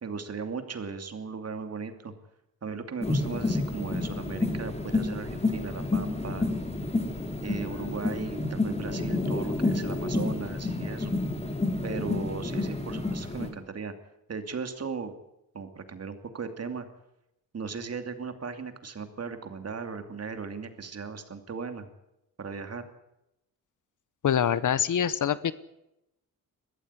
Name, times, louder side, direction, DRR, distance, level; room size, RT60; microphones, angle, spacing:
voice 1, 0.0-2.1 2.6-6.5 7.4-11.1 11.8-13.9 14.3-15.2 15.5-16.9 17.5-21.9 22.4-22.9, right 5 dB, 45° right, 8 dB, 2.7 m, -37 dB
sound 1, 3.0-13.5, left 2 dB, 20° left, 3.6 m, -29 dB
voice 2, 24.2-25.5, left 9 dB, 60° left, 17 dB, 1.0 m, -25 dB
21.5 x 14.5 x 9.8 m, 0.88 s
cardioid pair, 105°, 34 cm